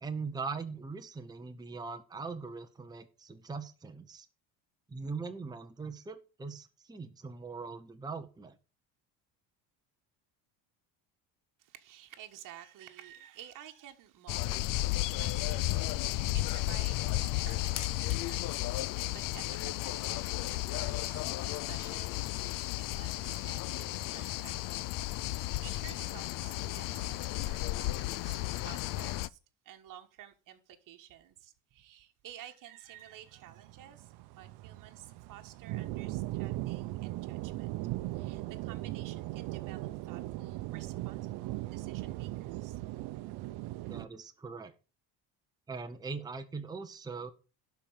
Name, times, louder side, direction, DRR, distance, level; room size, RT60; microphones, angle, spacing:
voice 1, 0.0-4.3 4.9-8.6 43.8-44.7 45.7-47.3, right 4 dB, 10° right, 1.0 m, -41 dB
voice 2, 11.6-29.4 29.6-37.8 38.1-42.8, right 11 dB, 50° right, 1.5 m, -53 dB
sound 1, 14.3-29.3, left 17 dB, 55° left, 0.5 m, -33 dB
sound 2, 33.4-44.1, right 17 dB, 70° right, 0.8 m, -39 dB
12.0 x 4.6 x 7.3 m
cardioid pair, 135°, 40 cm